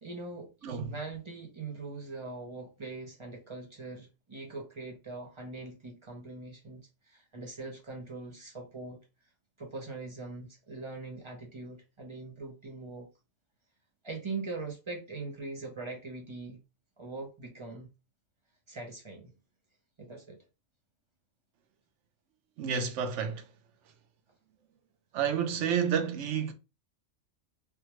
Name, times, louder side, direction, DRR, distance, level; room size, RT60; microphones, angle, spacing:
voice 1, 0.0-9.0 9.6-13.1 14.0-16.6 17.0-17.9 18.7-19.3 20.0-20.4, right 3 dB, 35° right, 0.5 m, -42 dB
voice 2, 22.6-23.5 25.1-26.5, right 7 dB, 65° right, 0.8 m, -30 dB
3.5 x 2.2 x 2.9 m
omnidirectional pair, 1.5 m